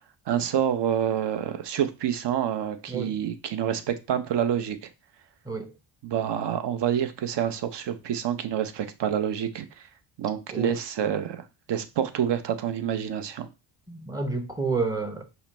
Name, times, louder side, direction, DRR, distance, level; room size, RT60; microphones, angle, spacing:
voice 1, 0.3-4.8 6.0-9.7 10.2-13.5, right 9 dB, 55° right, 0.8 m, -27 dB
voice 2, 2.9-3.2 5.4-5.7 10.5-10.7 13.9-15.2, right 4 dB, 10° right, 0.9 m, -29 dB
5.6 x 2.1 x 4.2 m
cardioid pair, 85°, 50 cm